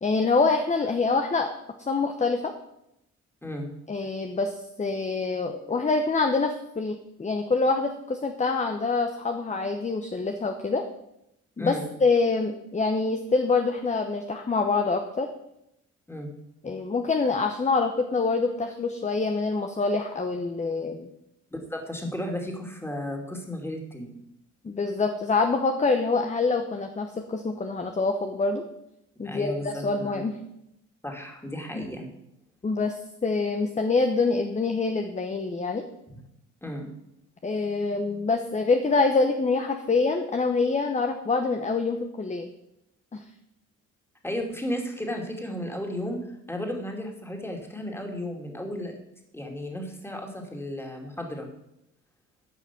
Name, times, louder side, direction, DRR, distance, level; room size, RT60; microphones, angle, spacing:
voice 1, 0.0-1.5 1.8-2.5 3.9-10.8 11.6-15.3 16.6-21.1 24.6-28.6 29.2-30.3 31.7-31.9 32.6-35.9 37.4-42.5 43.1-43.2, left 3 dB, 25° left, 5 dB, 1.0 m, -25 dB
voice 2, 11.6-11.9 16.1-16.3 21.5-24.2 29.2-30.2 31.0-32.1 36.6-36.9 44.2-48.9 49.3-51.5, left 1 dB, 10° left, 2 dB, 2.6 m, -34 dB
10.5 x 5.8 x 8.3 m, 0.83 s
cardioid pair, 90°, 30 cm